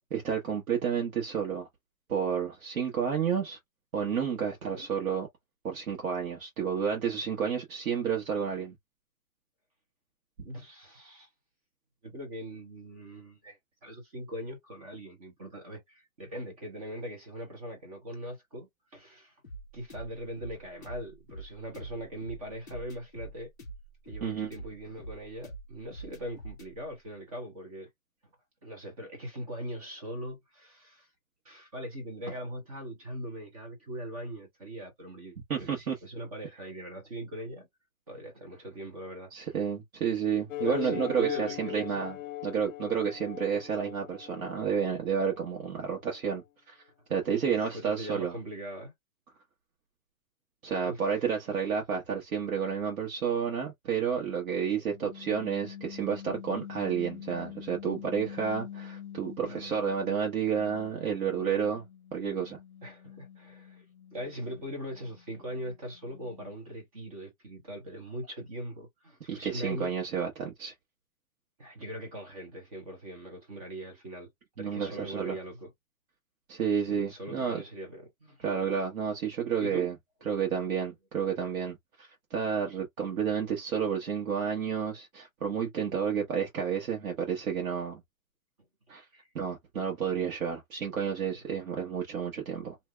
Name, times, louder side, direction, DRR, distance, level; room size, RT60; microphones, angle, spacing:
voice 1, 0.1-1.7 2.1-3.6 3.9-5.3 5.6-8.7 24.2-24.5 35.5-36.0 39.3-42.2 42.4-46.8 47.1-48.3 50.6-61.8 62.1-62.6 69.3-70.7 74.6-75.4 76.5-77.6 78.4-79.9 80.3-88.0 88.9-89.0 89.3-92.8, right 7 dB, 85° right, 1.3 m, -31 dB
voice 2, 10.4-11.3 12.0-19.3 19.7-23.5 24.0-27.9 28.6-31.1 31.4-37.7 38.1-39.3 40.6-42.0 47.4-48.9 50.8-51.0 59.5-59.6 62.8-63.9 64.1-69.9 71.6-74.3 74.6-75.7 76.8-78.6 79.6-79.9 89.1-89.3 91.4-91.6, equal, 25° right, 1.0 m, -41 dB
sound 1, 19.4-26.7, right 2 dB, 15° left, 0.5 m, -45 dB
sound 2, 40.5-45.4, left 15 dB, 70° left, 0.5 m, -39 dB
sound 3, 54.9-60.2 60.5-66.8, left 10 dB, 35° left, 0.8 m, -46 dB
3.2 x 2.7 x 2.3 m
hypercardioid pair, 175°, 41 cm